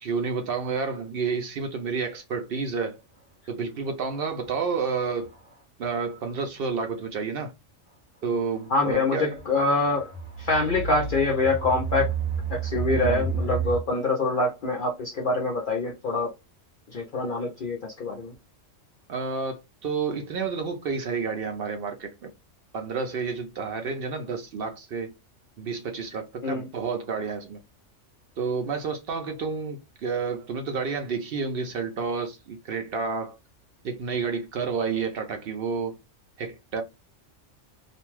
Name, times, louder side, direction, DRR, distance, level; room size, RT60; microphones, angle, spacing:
voice 1, 0.0-3.0 3.5-5.3 5.8-7.5 8.2-9.4 12.9-13.3 19.1-22.3 22.7-25.1 25.6-27.6 28.4-33.4 33.8-36.0 36.4-36.8, right 5 dB, 60° right, 0.7 m, -30 dB
sound 1, 4.4-4.5 5.2-5.6 6.6-6.7 8.5-8.8 9.4-13.8, right 5 dB, 35° right, 0.9 m, -31 dB
voice 2, 8.7-10.1 10.4-12.1 12.5-16.3 16.9-18.3 26.4-26.7, left 3 dB, 50° left, 0.7 m, -25 dB
2.5 x 2.2 x 3.1 m
omnidirectional pair, 1.3 m